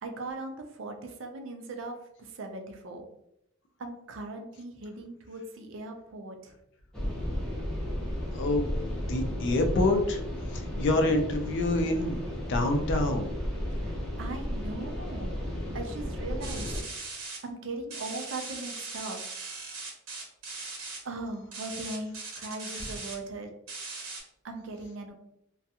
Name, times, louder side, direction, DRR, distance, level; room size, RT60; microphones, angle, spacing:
voice 1, 0.0-3.1 3.8-6.5 13.7-15.4 15.7-16.8 17.4-19.2 21.0-23.5 24.4-25.1, right 2 dB, 60° right, 4 dB, 0.4 m, -39 dB
sound 1, 6.9-16.8, equal, 5° left, 0.6 m, -34 dB
voice 2, 8.3-8.6 8.9-10.2 10.5-13.3 22.7-22.9, left 2 dB, 55° left, 5 dB, 0.4 m, -27 dB
sound 2, 16.4-17.4 17.9-21.0 21.5-23.1 23.7-24.2, right 3 dB, 75° right, 1.0 m, -39 dB
2.4 x 2.2 x 2.7 m, 0.78 s
head